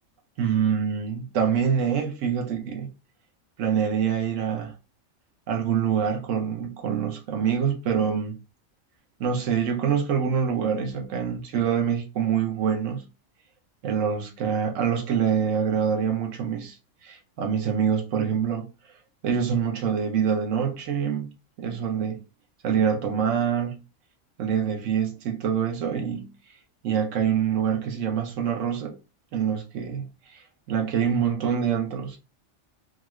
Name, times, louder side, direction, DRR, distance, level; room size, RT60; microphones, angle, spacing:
voice 1, 0.4-2.9 3.6-4.7 5.5-8.4 9.2-13.0 13.8-16.8 17.0-18.7 19.2-21.3 21.6-22.2 22.6-23.8 24.4-26.3 26.8-28.9 29.3-30.0 30.3-32.2, right 7 dB, 80° right, 1.1 m, -25 dB
2.9 x 2.5 x 3.0 m
omnidirectional pair, 1.3 m